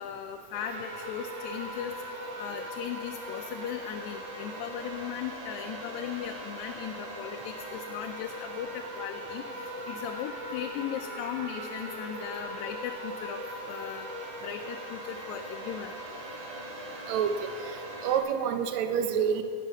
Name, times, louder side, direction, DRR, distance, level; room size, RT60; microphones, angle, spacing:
voice 1, 0.0-1.9 2.4-9.4 9.9-13.4 13.7-14.1 14.4-15.9, left 10 dB, 80° left, 5 dB, 1.9 m, -38 dB
sound 1, 0.5-18.2, equal, 45° right, 1.8 m, -40 dB
voice 2, 18.0-19.4, right 8 dB, 75° right, 8 dB, 2.0 m, -27 dB
17.0 x 6.5 x 5.4 m, 2.5 s
omnidirectional pair, 3.4 m